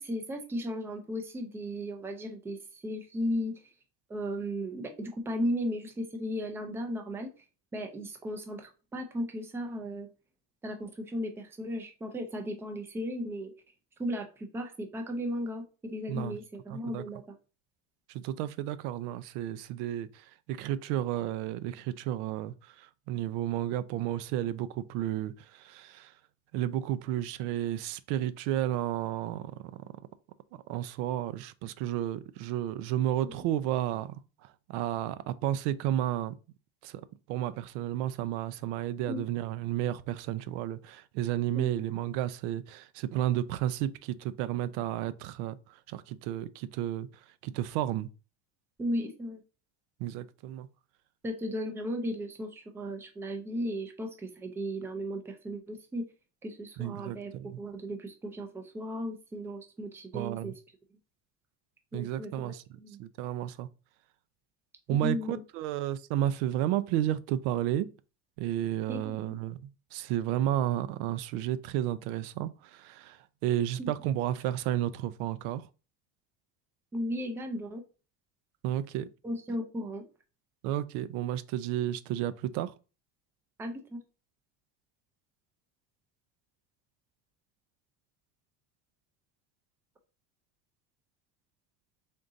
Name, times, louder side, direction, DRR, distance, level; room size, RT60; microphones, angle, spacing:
voice 1, 0.0-3.7 4.1-7.3 7.7-10.1 10.6-13.5 14.0-17.2 33.2-33.4 39.1-39.2 41.5-41.7 48.8-49.4 51.2-56.1 56.4-57.3 57.6-60.5 61.9-63.0 64.9-65.4 68.9-69.4 73.8-73.9 76.9-77.8 79.2-80.0 83.6-84.0, equal, 5° right, 0.4 m, -35 dB
voice 2, 16.7-17.0 18.1-26.1 26.5-29.5 30.7-34.1 34.4-36.3 36.8-37.0 37.3-47.1 47.4-48.1 50.0-50.7 56.8-57.6 60.1-60.5 61.9-62.6 63.0-63.7 64.9-67.9 68.4-75.6 78.6-79.1 80.6-82.7, right 12 dB, 80° right, 0.5 m, -32 dB
3.7 x 2.6 x 3.8 m
cardioid pair, 160°, 34 cm